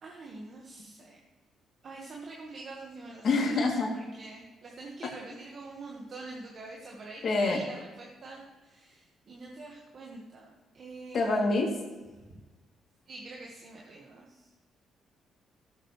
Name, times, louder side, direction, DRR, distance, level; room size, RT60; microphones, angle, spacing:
voice 1, 0.0-1.2 1.8-3.5 3.9-11.7 12.2-12.4 13.1-14.5, right 3 dB, 55° right, -1 dB, 1.7 m, -45 dB
voice 2, 3.2-3.9 7.2-7.6 11.1-11.7, left 3 dB, 55° left, -1 dB, 3.0 m, -26 dB
15.0 x 7.7 x 3.3 m, 1.2 s
supercardioid pair, 60°, 0 cm